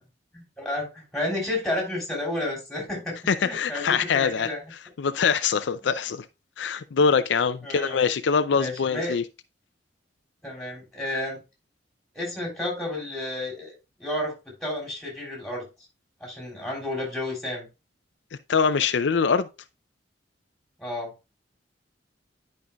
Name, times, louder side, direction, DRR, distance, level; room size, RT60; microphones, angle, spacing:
voice 1, 0.3-4.6 5.8-5.9 7.6-8.0 8.5-9.2 10.4-11.4 12.1-13.7 14.0-15.6 16.2-17.7 20.8-21.1, left 1 dB, ahead, 3.4 m, -31 dB
voice 2, 3.3-6.3 6.6-9.2 18.5-19.5, left 6 dB, 75° left, 0.4 m, -24 dB
10.5 x 5.3 x 2.3 m
head